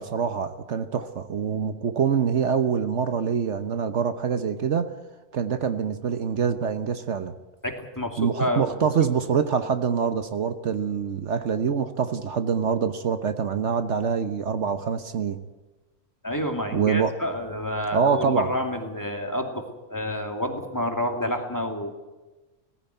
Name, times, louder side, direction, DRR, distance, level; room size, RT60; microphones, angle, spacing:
voice 1, 0.0-4.9 5.3-7.3 8.2-15.4 16.7-17.1 17.9-18.5, right 6 dB, 65° right, 10 dB, 1.2 m, -25 dB
voice 2, 7.6-8.8 16.2-21.9, left 1 dB, 15° left, 3 dB, 2.5 m, -29 dB
19.0 x 16.0 x 9.2 m, 1.2 s
omnidirectional pair, 1.3 m